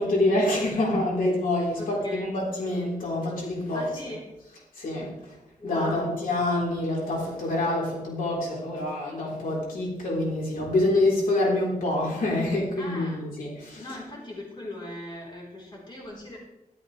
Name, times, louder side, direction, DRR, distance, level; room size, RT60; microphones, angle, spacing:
voice 1, 0.0-3.9 4.7-5.4 5.6-13.8, left 1 dB, 75° left, -4 dB, 3.9 m, -26 dB
voice 2, 1.8-2.3 3.7-4.2 5.6-6.2 12.8-13.2 13.7-16.4, left 1 dB, 30° left, -3 dB, 4.0 m, -39 dB
13.0 x 12.5 x 3.3 m, 0.92 s
wide cardioid pair, 120°, 14 cm